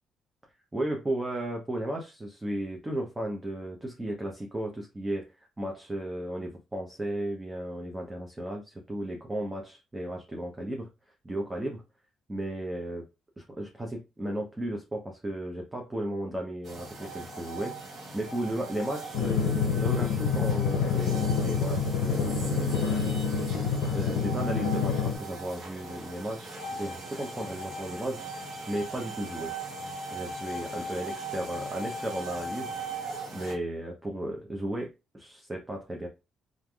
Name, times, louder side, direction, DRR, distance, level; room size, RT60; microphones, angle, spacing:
voice 1, 0.7-10.9 11.2-11.8 12.3-13.0 13.4-17.7 18.1-23.2 23.6-26.5 26.8-29.5 30.1-32.7 33.3-36.1, right 1 dB, 15° right, 0 dB, 0.6 m, -35 dB
sound 1, 16.7-33.6, right 2 dB, 65° right, 0.9 m, -39 dB
Drum, 19.1-25.2, left 6 dB, 90° left, 0.5 m, -27 dB
3.2 x 2.5 x 2.3 m, 0.27 s
cardioid pair, 90°, 0 cm